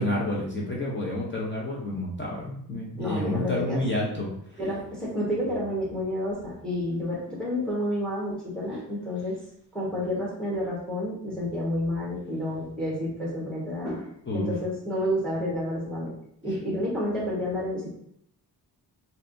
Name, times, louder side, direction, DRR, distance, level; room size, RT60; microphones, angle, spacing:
voice 1, 0.0-4.3 14.3-14.5, left 1 dB, 30° left, -3 dB, 0.7 m, -29 dB
voice 2, 3.0-3.8 4.6-9.3 9.7-14.1 14.3-16.1 16.4-17.9, left 1 dB, ahead, -5 dB, 1.3 m, -30 dB
3.2 x 2.7 x 2.6 m, 0.69 s
cardioid pair, 100°, 41 cm